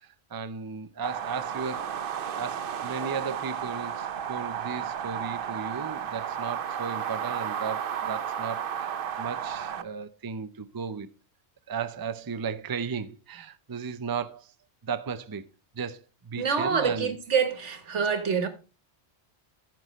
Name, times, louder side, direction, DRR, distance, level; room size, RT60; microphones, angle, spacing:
voice 1, 0.3-1.9 2.4-11.1 11.7-14.5 14.8-15.4 15.8-16.0 16.3-17.2, right 6 dB, 25° right, 0.5 m, -35 dB
sound 1, 1.0-9.8, right 8 dB, 55° right, 0.8 m, -33 dB
voice 2, 16.4-18.5, right 6 dB, 80° right, 1.6 m, -26 dB
14.5 x 6.0 x 3.1 m
omnidirectional pair, 1.2 m